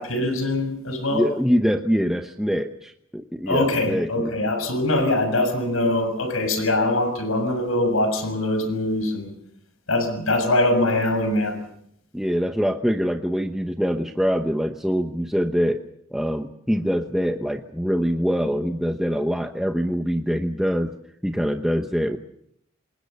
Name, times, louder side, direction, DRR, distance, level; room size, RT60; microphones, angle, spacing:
voice 1, 0.0-1.2 3.5-9.3 9.9-11.6, left 1 dB, 90° left, 8 dB, 6.5 m, -23 dB
voice 2, 1.1-4.3 12.1-15.8 16.1-20.9 21.2-22.2, equal, ahead, 4 dB, 0.9 m, -24 dB
28.5 x 20.5 x 6.8 m, 0.71 s
head